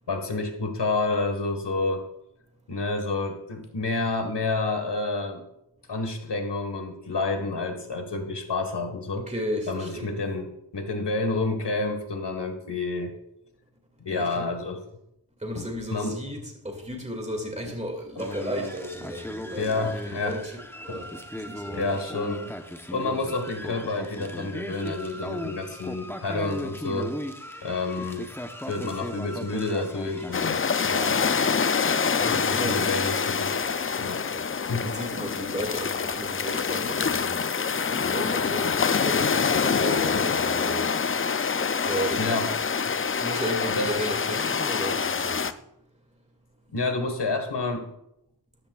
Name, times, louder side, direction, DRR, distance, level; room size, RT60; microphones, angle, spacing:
voice 1, 0.1-2.0 2.7-5.4 5.9-9.3 9.7-13.1 14.0-14.8 15.5-16.1 19.5-20.4 20.9-21.0 21.7-22.5 22.9-27.1 27.6-28.3 28.6-31.2 32.3-34.2 34.6-34.9 40.1-40.3 42.2-42.5 43.8-43.9 46.7-47.9, left 3 dB, 70° left, 1.6 m, -29 dB
voice 2, 9.3-10.2 14.1-14.4 15.4-22.0 28.0-28.1 32.0-32.8 34.3-34.4 34.8-37.4 37.8-40.9 41.9-42.3 43.2-45.6, equal, 15° right, 2.2 m, -34 dB
sound 1, 18.2-30.5, left 1 dB, 5° left, 0.9 m, -37 dB
sound 2, 30.3-45.5, left 5 dB, 30° left, 0.4 m, -26 dB
14.0 x 10.0 x 2.4 m
wide cardioid pair, 75°, 43 cm